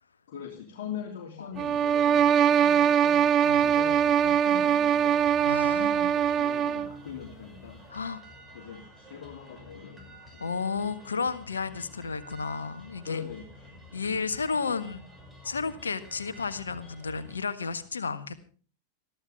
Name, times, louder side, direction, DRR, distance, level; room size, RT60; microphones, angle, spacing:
voice 1, 0.3-3.3 3.6-5.2 5.6-7.8 8.5-10.5 13.0-13.8 14.5-14.9, left 7 dB, 55° left, 1 dB, 3.0 m, -41 dB
sound 1, 1.5-17.4, equal, 10° right, 6.0 m, -50 dB
sound 2, 1.6-7.0, right 8 dB, 30° right, 0.6 m, -22 dB
voice 2, 5.4-5.9 7.9-8.2 10.4-13.2 13.9-15.0 15.4-18.5, left 5 dB, 75° left, 12 dB, 1.5 m, -32 dB
22.0 x 14.0 x 3.5 m, 0.39 s
figure-of-eight pair, 90°, 0 cm